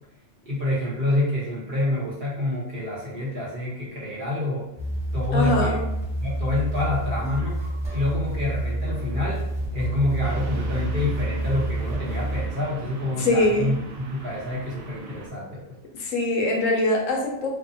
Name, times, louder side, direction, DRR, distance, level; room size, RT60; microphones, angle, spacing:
voice 1, 0.4-4.7 5.1-5.8 6.2-7.6 7.9-9.5 9.7-15.8, left 1 dB, 45° right, -7 dB, 1.0 m, -27 dB
sound 1, 4.8-12.5, right 1 dB, 5° right, 1.0 m, -29 dB
voice 2, 5.3-5.8 13.2-13.8 15.9-17.5, left 2 dB, 80° left, 0 dB, 1.0 m, -23 dB
sound 2, 10.2-15.3, right 4 dB, 65° right, 0.6 m, -39 dB
2.8 x 2.1 x 2.6 m, 0.89 s
omnidirectional pair, 1.4 m